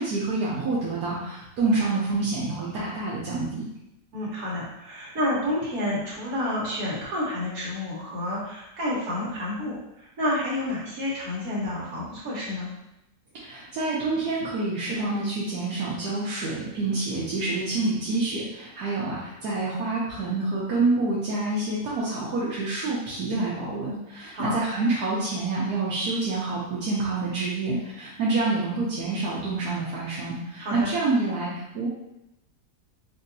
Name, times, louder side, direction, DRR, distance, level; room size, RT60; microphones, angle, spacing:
voice 1, 0.0-3.7 13.3-31.9, right 3 dB, 80° right, -8 dB, 1.3 m, -27 dB
voice 2, 4.1-12.7 24.3-24.6 30.6-30.9, left 1 dB, 65° right, -6 dB, 1.6 m, -29 dB
4.2 x 2.7 x 2.6 m, 0.86 s
omnidirectional pair, 1.7 m